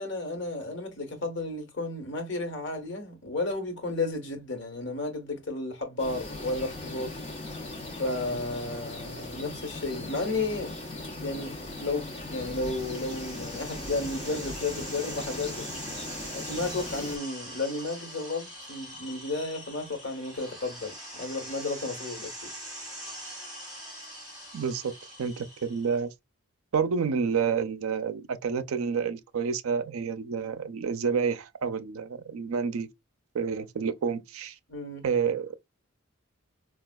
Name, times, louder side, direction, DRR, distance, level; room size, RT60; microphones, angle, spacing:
voice 1, 0.0-7.1 8.0-10.8 11.2-15.7 16.3-22.5 34.7-35.0, left 2 dB, 60° left, 1.1 m, -33 dB
sound 1, 6.0-17.2, left 2 dB, 30° left, 0.7 m, -39 dB
sound 2, 12.2-26.0, equal, ahead, 1.9 m, -43 dB
voice 2, 24.5-24.9 25.2-26.1 26.7-32.9 33.3-34.6 35.0-35.6, right 6 dB, 80° right, 0.4 m, -29 dB
4.3 x 2.3 x 2.2 m
head